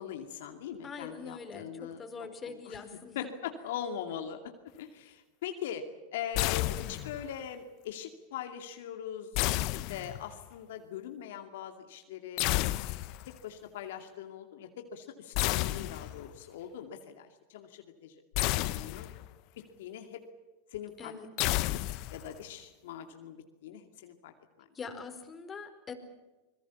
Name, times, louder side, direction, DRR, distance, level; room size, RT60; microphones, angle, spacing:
voice 1, 0.0-2.0 2.4-2.8 3.1-5.8 6.1-12.6 13.4-18.2 18.5-19.1 19.6-20.2 20.7-21.1 21.4-21.8 22.1-24.3, left 9 dB, 70° left, 5 dB, 2.5 m, -41 dB
voice 2, 0.8-3.3 21.0-21.3 24.7-25.9, left 5 dB, 25° left, 6 dB, 4.6 m, -43 dB
sound 1, 6.3-7.3 9.3-10.4 12.4-13.3 15.3-16.4 18.3-19.3 21.4-22.4, left 19 dB, 55° left, 1.1 m, -31 dB
26.5 x 21.5 x 7.2 m, 1.1 s
hypercardioid pair, 100°, 0 cm